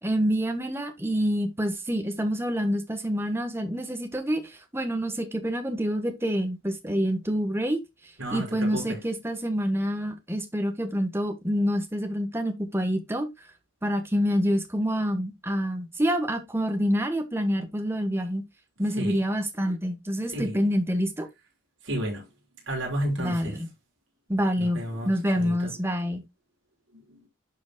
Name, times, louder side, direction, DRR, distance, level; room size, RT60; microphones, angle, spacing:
voice 1, 0.0-7.8 8.3-13.3 13.8-18.4 18.8-21.3 23.2-23.7 24.3-26.2, equal, 10° right, 1.3 m, -27 dB
voice 2, 21.8-22.2 22.7-23.6 24.6-25.7 27.1-27.3, right 1 dB, 65° right, 5.5 m, -32 dB
11.5 x 5.1 x 2.3 m
head